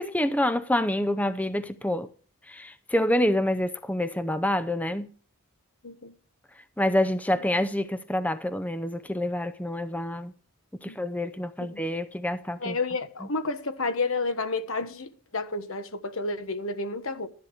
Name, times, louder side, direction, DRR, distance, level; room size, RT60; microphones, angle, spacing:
voice 1, 0.0-2.1 2.5-5.1 6.8-10.3 10.8-12.8, left 1 dB, 5° left, 0.5 m, -27 dB
voice 2, 12.6-17.3, left 3 dB, 65° left, 1.3 m, -30 dB
12.0 x 10.5 x 4.6 m
head